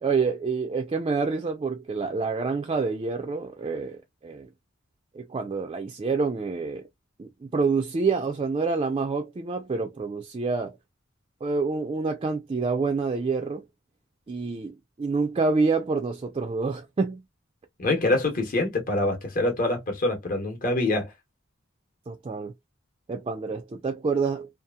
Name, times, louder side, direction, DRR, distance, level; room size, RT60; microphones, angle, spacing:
voice 1, 0.0-4.5 5.1-6.9 7.2-10.8 11.4-13.6 14.3-17.2 22.1-22.5 23.1-24.5, right 4 dB, 25° right, 0.3 m, -27 dB
voice 2, 17.8-21.1, left 2 dB, 45° left, 0.9 m, -25 dB
2.7 x 2.4 x 2.3 m
head